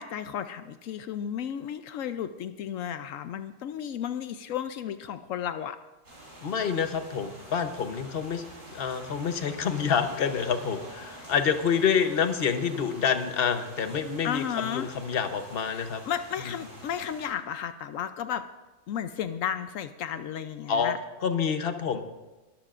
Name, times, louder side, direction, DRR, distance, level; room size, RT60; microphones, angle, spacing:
voice 1, 0.0-5.8 11.2-11.3 14.2-14.9 15.7-18.5 18.9-21.0, left 9 dB, 80° left, 10 dB, 1.0 m, -33 dB
sound 1, 6.0-17.3, right 1 dB, 75° right, 6.0 m, -47 dB
voice 2, 6.4-16.0 20.7-20.9 21.2-22.0, left 7 dB, 50° left, 8 dB, 1.1 m, -27 dB
22.0 x 13.5 x 2.5 m, 1.1 s
omnidirectional pair, 1.3 m